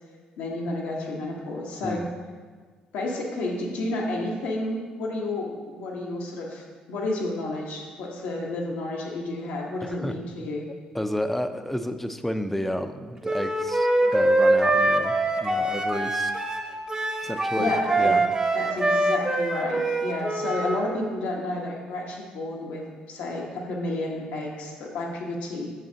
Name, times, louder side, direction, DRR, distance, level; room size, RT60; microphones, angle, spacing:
voice 1, 0.4-2.0 2.9-10.7 17.6-18.2 18.5-25.7, left 2 dB, 80° left, -2 dB, 1.2 m, -31 dB
voice 2, 9.8-10.1 10.9-16.3 17.2-17.7 18.0-18.2, equal, 5° left, 8 dB, 0.5 m, -31 dB
Wind instrument woodwind instrument, 13.2-20.8, right 2 dB, 25° right, 0.9 m, -24 dB
7.8 x 6.6 x 2.8 m, 1.6 s
supercardioid pair, 65°, 3 cm